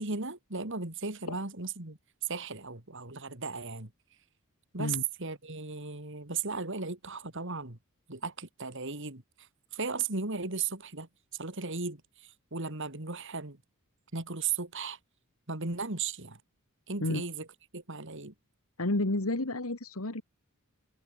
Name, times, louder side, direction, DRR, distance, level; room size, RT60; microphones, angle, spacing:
voice 1, 0.0-3.9 4.7-7.8 8.1-9.2 9.7-13.6 14.1-15.0 15.5-16.4 16.9-17.5 17.7-18.3, right 4 dB, 60° right, 3.1 m, -36 dB
voice 2, 18.8-20.2, left 2 dB, 85° left, 2.0 m, -30 dB
head